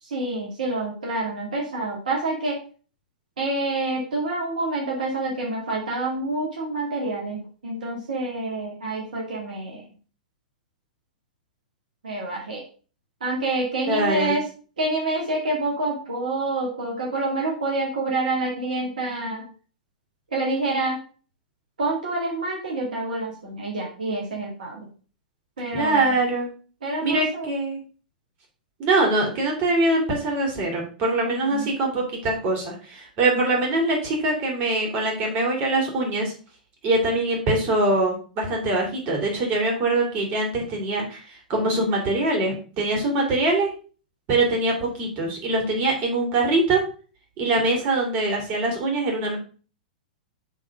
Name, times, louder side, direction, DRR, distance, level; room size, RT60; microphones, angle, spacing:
voice 1, 0.0-2.6 3.4-9.8 12.0-12.6 13.2-14.4 14.8-19.5 20.3-21.0 21.8-24.9 25.6-26.1 26.8-27.5 31.2-31.7, right 2 dB, 70° right, -2 dB, 2.0 m, -27 dB
voice 2, 13.9-14.3 25.7-26.5 27.0-27.8 28.8-36.3 36.8-43.7 44.3-46.8 47.4-49.4, right 2 dB, 40° right, 0 dB, 3.0 m, -23 dB
6.4 x 3.9 x 5.1 m, 0.39 s
figure-of-eight pair, 100°, 5 cm